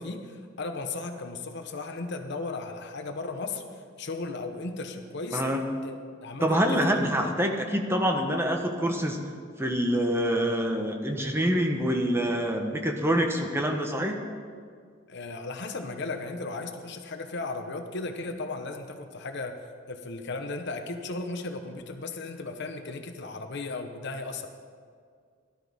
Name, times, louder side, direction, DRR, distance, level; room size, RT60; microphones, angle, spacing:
voice 1, 0.0-5.4 5.8-6.0 6.2-7.3 15.1-24.5, left 3 dB, 60° left, 6 dB, 1.0 m, -36 dB
voice 2, 6.4-9.2 9.6-14.2, equal, 10° right, 3 dB, 1.0 m, -26 dB
17.5 x 12.0 x 3.6 m, 2.1 s
head